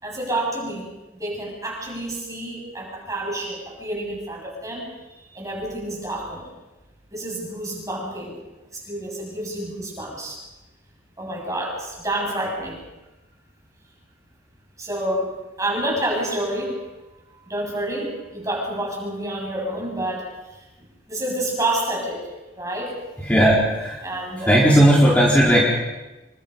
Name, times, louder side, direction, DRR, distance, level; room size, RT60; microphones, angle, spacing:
voice 1, 0.0-6.5 7.1-8.4 8.7-10.4 11.2-12.8 14.8-15.3 15.6-16.8 17.5-20.6 21.1-22.2 22.6-23.0 24.0-24.6, right 1 dB, 20° right, -1 dB, 7.6 m, -28 dB
voice 2, 23.2-24.0 24.5-25.6, equal, 10° left, -5 dB, 4.3 m, -16 dB
27.0 x 24.0 x 5.5 m, 1.1 s
head